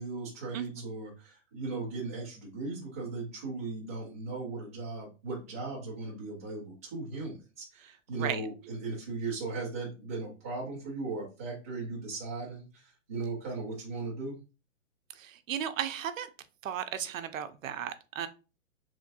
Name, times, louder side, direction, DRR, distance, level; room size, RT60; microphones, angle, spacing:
voice 1, 0.0-14.4, right 3 dB, 15° right, -6 dB, 0.4 m, -37 dB
voice 2, 0.5-0.8 8.1-8.5 15.2-16.3 16.6-18.3, right 9 dB, 75° right, 10 dB, 0.5 m, -35 dB
3.1 x 2.5 x 2.5 m, 0.32 s
hypercardioid pair, 160°, 40 cm